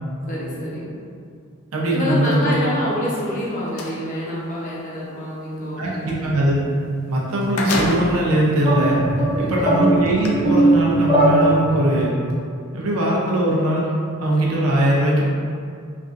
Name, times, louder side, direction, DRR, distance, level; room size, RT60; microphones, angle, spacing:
voice 1, 0.3-0.9 1.9-6.2 9.3-9.7, equal, 40° left, -6 dB, 0.7 m, -27 dB
voice 2, 1.7-2.5 5.8-6.6 7.1-9.0 9.4-12.1 12.7-13.9 14.2-15.3, right 1 dB, 75° right, -4 dB, 0.6 m, -20 dB
sound 1, 3.0-4.0 6.8-6.9 7.2-8.3 9.0-9.1 10.1-10.3, left 2 dB, 85° left, 0.4 m, -27 dB
sound 2, 8.6-12.1, right 2 dB, 25° right, 1.0 m, -19 dB
3.3 x 2.5 x 2.5 m, 2.3 s
head